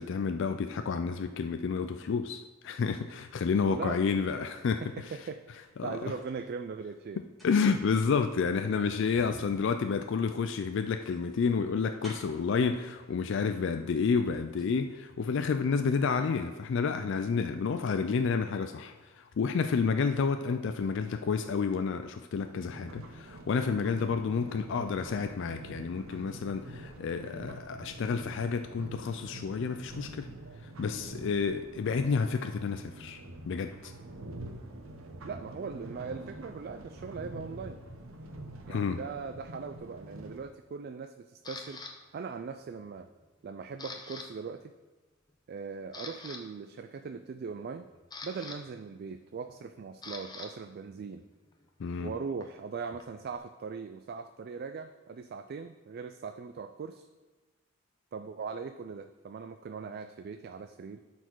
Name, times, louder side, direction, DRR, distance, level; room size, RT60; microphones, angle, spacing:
voice 1, 0.0-4.8 5.8-6.0 7.4-30.3 30.8-33.2 33.5-33.9 38.7-39.0 51.8-52.1, left 5 dB, 60° left, 7 dB, 0.4 m, -30 dB
voice 2, 3.7-4.0 4.8-5.4 5.8-7.2 35.2-37.8 38.6-41.8 42.1-43.1 43.4-44.7 45.5-47.9 48.2-51.2 52.0-57.1 58.1-61.0, right 5 dB, 50° right, 8 dB, 0.3 m, -40 dB
sound 1, 5.6-6.4 7.1-12.5 13.5-13.6 14.0-14.8 15.1-15.2, equal, ahead, 2.4 m, -52 dB
sound 2, 22.4-40.4, right 1 dB, 90° right, 0.8 m, -46 dB
Camera, 41.4-41.9 42.5-42.9 43.2-44.3 44.5-44.7 45.3-45.4 45.8-46.4 47.6-50.5 50.8-53.4, left 3 dB, 20° left, 0.7 m, -46 dB
12.0 x 4.4 x 4.6 m, 1.2 s
head